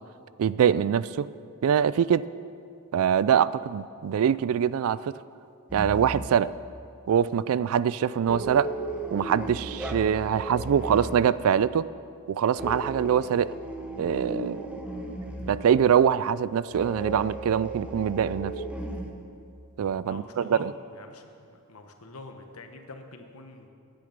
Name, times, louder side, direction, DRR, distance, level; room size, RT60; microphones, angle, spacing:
voice 1, 0.4-1.3 1.6-2.2 2.9-5.1 5.7-6.5 7.1-8.7 9.1-11.9 12.3-13.5 14.0-14.8 15.5-18.5 19.8-20.7, right 8 dB, 65° right, 18 dB, 0.3 m, -24 dB
sound 1, 5.7-6.5 8.3-11.2 12.6-15.7 16.7-19.1, right 1 dB, 5° right, 1.0 m, -35 dB
voice 2, 20.0-23.7, left 2 dB, 75° left, 5 dB, 1.2 m, -45 dB
14.5 x 9.6 x 5.2 m, 2.4 s
head